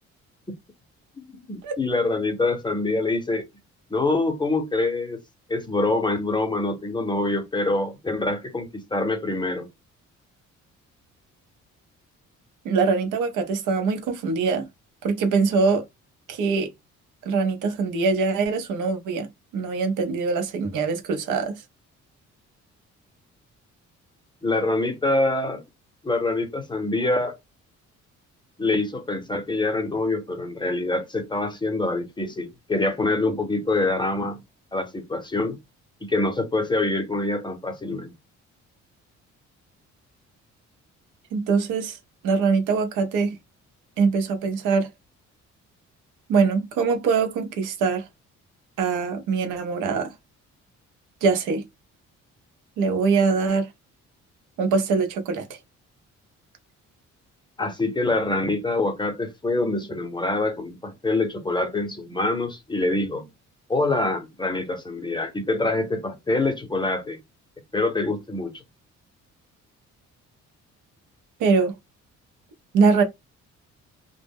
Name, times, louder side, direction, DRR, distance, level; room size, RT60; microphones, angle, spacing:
voice 1, 1.2-3.5 3.9-5.2 5.5-9.7 24.4-25.6 26.0-27.4 28.6-34.4 34.7-35.6 36.0-38.1 57.6-63.3 63.7-67.2 67.7-68.5, left 2 dB, 15° left, 0.6 m, -25 dB
voice 2, 12.6-14.7 15.0-15.8 16.3-16.7 17.3-19.3 19.5-21.6 41.3-42.0 42.2-43.4 44.0-44.9 46.3-48.1 48.8-50.1 51.2-51.6 52.8-53.7 54.6-55.4 71.4-71.7 72.7-73.0, right 4 dB, 90° right, 0.7 m, -23 dB
2.1 x 2.0 x 3.4 m
cardioid pair, 90°, 30 cm